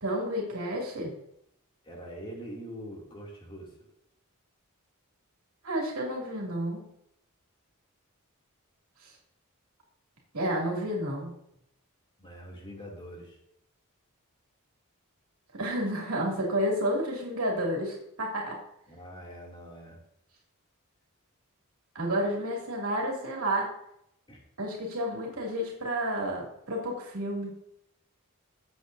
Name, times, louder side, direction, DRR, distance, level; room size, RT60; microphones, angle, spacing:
voice 1, 0.0-1.1 5.6-6.8 9.0-9.1 10.3-11.3 15.5-18.6 21.9-23.7 24.6-27.6, equal, 75° right, -2 dB, 2.7 m, -30 dB
voice 2, 1.8-3.8 12.2-13.4 18.9-20.0 24.3-24.4, equal, 25° left, -2 dB, 2.7 m, -43 dB
17.0 x 8.0 x 2.7 m, 0.78 s
head